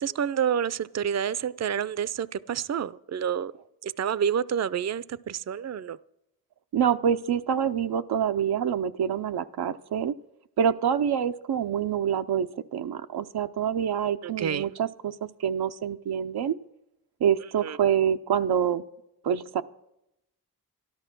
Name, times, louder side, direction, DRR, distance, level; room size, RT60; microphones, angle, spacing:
voice 1, 0.0-3.5 3.8-6.0 14.2-14.7 17.6-17.8, right 8 dB, 45° right, 0.5 m, -29 dB
voice 2, 6.7-10.2 10.6-16.6 17.2-18.8 19.2-19.6, right 8 dB, 90° right, 0.6 m, -26 dB
13.0 x 12.0 x 6.0 m
cardioid pair, 45°, 37 cm